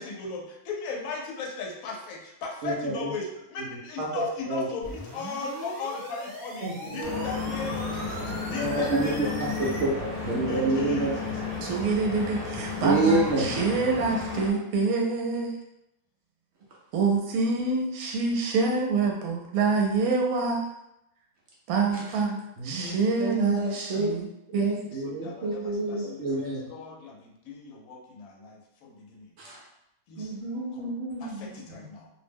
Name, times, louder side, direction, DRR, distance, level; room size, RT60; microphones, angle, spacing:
voice 1, 0.0-9.8 10.4-12.3 22.3-23.3 24.8-29.3 30.1-30.3 30.7-30.9 31.2-32.1, left 4 dB, 80° left, 0 dB, 1.0 m, -38 dB
voice 2, 2.6-3.1 4.0-4.1 4.5-4.7 6.6-7.2 8.6-11.1 12.8-13.6 22.6-22.9 23.2-24.1 24.5-26.6 29.4-29.6 30.2-31.8, right 2 dB, 60° right, -4 dB, 0.8 m, -28 dB
sound 1, 4.8-9.8, equal, 30° right, 0.3 m, -40 dB
Stream / Boat Water vehicle, 7.0-14.5, left 4 dB, 45° left, 1.0 m, -33 dB
voice 3, 11.6-15.6 16.9-20.7 21.7-24.3 24.5-24.9, right 4 dB, 80° right, 1 dB, 1.0 m, -26 dB
2.6 x 2.1 x 3.4 m, 0.84 s
omnidirectional pair, 1.5 m